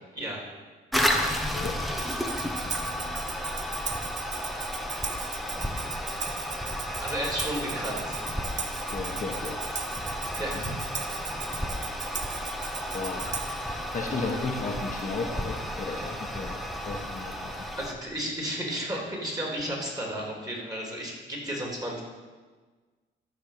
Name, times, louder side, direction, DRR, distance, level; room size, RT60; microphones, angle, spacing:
voice 1, 0.1-0.5 7.0-8.2 10.4-10.7 17.8-22.0, right 1 dB, 20° right, -2 dB, 3.5 m, -33 dB
Toilet flush, 0.9-17.9, equal, ahead, 1.0 m, -32 dB
Tambourine, 2.0-13.7, right 6 dB, 35° right, 0.8 m, -37 dB
voice 2, 2.6-3.3 8.9-9.6 9.9-10.6 12.9-13.3 13.9-17.8, left 3 dB, 40° left, -1 dB, 1.5 m, -35 dB
13.0 x 4.8 x 6.8 m, 1.4 s
cardioid pair, 90°, 20 cm